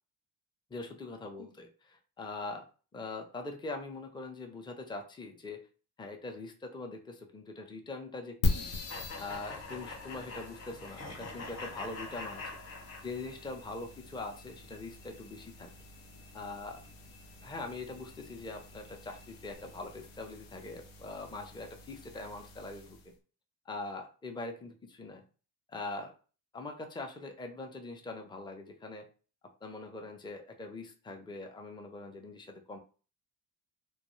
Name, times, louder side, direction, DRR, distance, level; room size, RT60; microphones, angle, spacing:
voice 1, 0.7-2.7 2.9-5.7 6.0-8.7 9.2-12.4 13.0-15.7 16.3-16.9 17.4-23.1 23.7-25.2 25.7-26.1 26.5-29.1 29.6-32.8, left 3 dB, 10° left, 4 dB, 0.4 m, -42 dB
sound 1, 8.4-23.1, left 2 dB, 80° left, 0.7 m, -41 dB
sound 2, 8.9-13.5, left 3 dB, 35° left, 0.8 m, -44 dB
2.2 x 2.2 x 3.0 m, 0.37 s
supercardioid pair, 65°, 47 cm